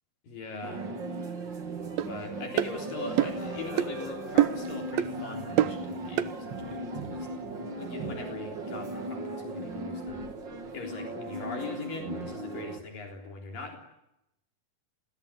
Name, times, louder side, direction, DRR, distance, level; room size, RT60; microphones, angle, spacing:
voice 1, 0.2-0.9 2.1-7.5 7.8-10.2 10.7-13.8, left 4 dB, 65° left, 2 dB, 5.3 m, -41 dB
sound 1, 0.6-12.8, right 2 dB, 35° right, 2.7 m, -37 dB
sound 2, 2.0-2.1 2.6-2.7 3.2-3.4 3.8-3.9 4.4-4.7 5.0-5.1 5.6-5.8 6.2-6.3, right 12 dB, 80° right, 3.0 m, -25 dB
Acoustic guitar, 3.4-6.7, left 8 dB, 85° left, 5.2 m, -50 dB
29.0 x 21.0 x 9.8 m, 0.87 s
omnidirectional pair, 4.3 m